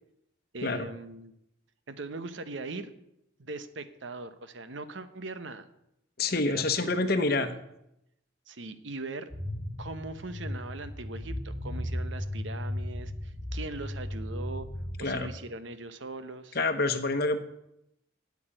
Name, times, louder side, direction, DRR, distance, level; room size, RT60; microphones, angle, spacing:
voice 1, 0.5-1.3 1.9-3.0 3.4-5.6 6.4-7.6 8.5-9.3 9.8-14.7 15.0-16.6, right 3 dB, 65° right, 11 dB, 0.9 m, -40 dB
voice 2, 6.2-7.5 15.0-15.3 16.5-17.4, left 3 dB, 50° left, 9 dB, 1.0 m, -27 dB
sound 1, 9.3-15.2, left 1 dB, ahead, 1.4 m, -36 dB
8.5 x 8.4 x 8.9 m, 0.82 s
head